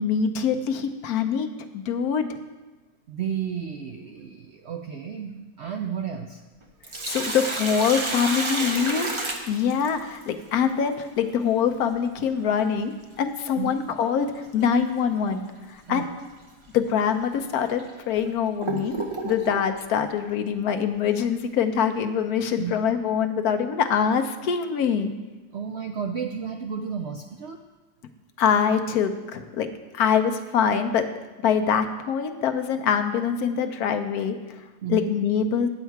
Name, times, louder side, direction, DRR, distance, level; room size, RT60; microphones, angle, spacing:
voice 1, 0.0-1.5 1.7-2.3 7.1-9.1 9.5-15.4 15.7-16.1 16.7-18.9 19.2-25.1 28.4-29.7 29.9-31.0 31.4-34.6 34.9-35.7, left 7 dB, 75° left, 7 dB, 1.2 m, -24 dB
voice 2, 3.1-6.4 13.6-13.7 15.9-16.1 22.6-22.7 25.5-27.6 34.8-35.1, right 7 dB, 70° right, 4 dB, 0.6 m, -32 dB
Sink (filling or washing), 6.6-10.2 12.6-12.7 14.6-14.8 15.3-15.4 16.2-16.3 17.0-17.1 17.8-19.7, right 2 dB, 30° right, 0.5 m, -30 dB
9.0 x 7.4 x 4.6 m, 1.2 s
omnidirectional pair, 1.6 m